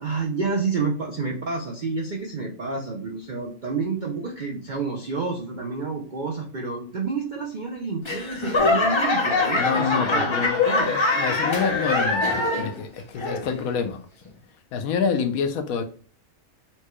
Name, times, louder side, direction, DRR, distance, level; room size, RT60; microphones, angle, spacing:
voice 1, 0.0-11.0, right 4 dB, 65° right, 0.5 m, -29 dB
Laughter / Clapping / Crowd, 8.0-12.8 13.2-13.7 14.3-14.4, left 3 dB, 40° left, 0.4 m, -23 dB
voice 2, 9.6-10.6 10.9-14.0 14.7-15.8, left 6 dB, 80° left, 1.1 m, -27 dB
4.4 x 2.2 x 3.0 m
omnidirectional pair, 1.5 m